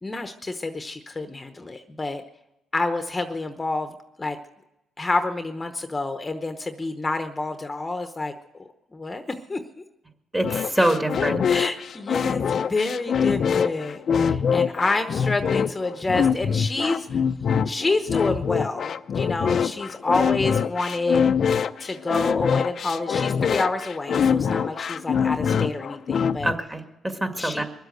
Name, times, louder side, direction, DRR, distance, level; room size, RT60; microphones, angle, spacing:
voice 1, 0.0-2.2 2.7-4.4 5.0-8.3 8.6-9.2 9.5-9.6 11.5-17.2 17.7-21.3 21.8-26.5 27.4-27.6, left 3 dB, 20° left, 7 dB, 1.0 m, -28 dB
voice 2, 10.3-11.4 26.4-27.6, right 1 dB, 15° right, 5 dB, 2.0 m, -24 dB
sound 1, 10.4-26.5, left 7 dB, 55° left, 0.6 m, -24 dB
22.5 x 8.0 x 7.9 m, 0.92 s
cardioid pair, 90°, 0 cm